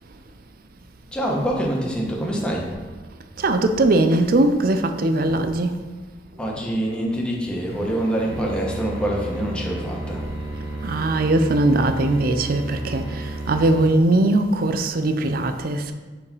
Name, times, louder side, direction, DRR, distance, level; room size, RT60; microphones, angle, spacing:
voice 1, 1.1-2.7 6.4-10.3, right 1 dB, 5° left, 1.1 m, -25 dB
voice 2, 3.4-5.7 10.8-13.0 13.5-15.9, right 2 dB, 55° right, 0.5 m, -20 dB
sound 1, 7.7-13.8, right 1 dB, 90° right, 1.4 m, -32 dB
4.9 x 4.8 x 5.4 m
head